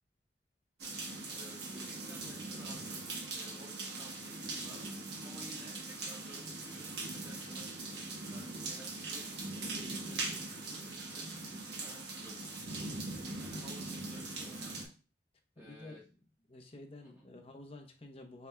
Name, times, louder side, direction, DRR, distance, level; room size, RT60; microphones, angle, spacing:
sound 1, 0.8-14.8, right 3 dB, 70° right, 1.2 m, -41 dB
voice 1, 1.3-2.8 3.3-4.8 5.2-7.7 8.3-9.2 9.7-11.2 11.8-12.8 13.4-14.9 15.6-16.0 17.0-17.2, right 1 dB, 15° right, -7 dB, 1.3 m, -55 dB
voice 2, 15.6-16.0 16.5-18.5, left 2 dB, 30° left, 2 dB, 0.8 m, -50 dB
6.7 x 3.4 x 2.3 m, 0.33 s
head